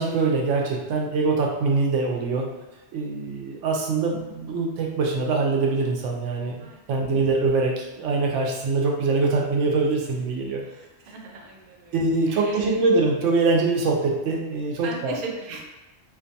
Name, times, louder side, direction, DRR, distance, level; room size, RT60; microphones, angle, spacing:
voice 1, 0.0-2.5 2.9-10.6 11.9-15.1, right 3 dB, 90° right, 0 dB, 0.9 m, -23 dB
voice 2, 10.6-12.0 12.3-12.8 14.7-15.6, right 3 dB, 60° right, 0 dB, 0.4 m, -38 dB
2.5 x 2.3 x 2.6 m, 1.1 s
omnidirectional pair, 1.2 m